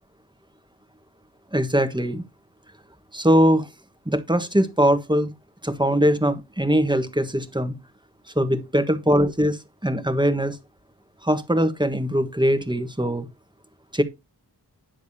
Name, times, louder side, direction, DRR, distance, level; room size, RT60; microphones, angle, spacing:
voice 1, 1.5-2.2 3.1-3.7 4.0-5.3 5.6-7.7 8.3-10.6 11.2-13.3 13.9-14.0, equal, 10° right, 1.4 m, -21 dB
10.5 x 7.0 x 2.8 m
wide cardioid pair, 45°, 39 cm